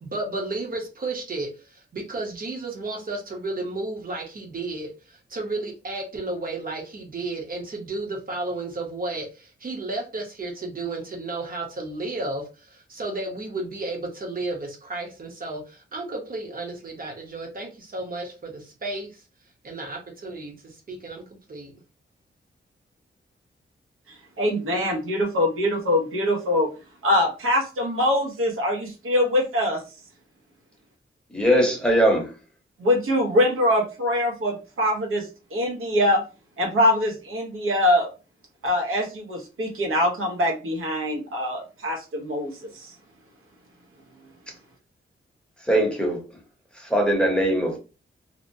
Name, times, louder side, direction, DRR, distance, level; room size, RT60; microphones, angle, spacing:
voice 1, 0.0-19.2 19.6-21.7, right 2 dB, 45° right, 0.8 m, -33 dB
voice 2, 24.4-26.7 27.0-29.8 32.8-36.2 36.6-38.1 38.6-42.9, left 1 dB, 85° right, 0.8 m, -23 dB
voice 3, 31.3-32.3 45.6-46.2 46.7-47.8, right 1 dB, 5° left, 0.7 m, -21 dB
2.8 x 2.1 x 2.6 m
wide cardioid pair, 160°, 21 cm